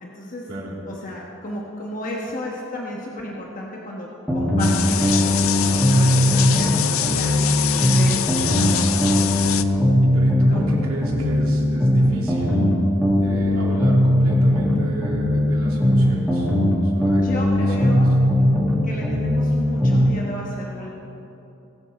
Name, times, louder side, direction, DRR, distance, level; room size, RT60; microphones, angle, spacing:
voice 1, 0.0-0.5 0.9-9.0 10.5-10.6 17.2-18.1 18.8-20.9, left 1 dB, 40° left, -2 dB, 1.2 m, -33 dB
sound 1, 4.3-6.8 7.0-10.8 11.0-14.8 15.0-18.8 19.0-20.1, equal, ahead, 2.0 m, -19 dB
sound 2, 4.6-9.6, left 11 dB, 75° left, 0.5 m, -25 dB
voice 2, 10.0-12.8 13.2-16.5 16.8-17.9, right 1 dB, 90° right, -3 dB, 2.9 m, -31 dB
19.5 x 8.1 x 4.3 m, 2.9 s
head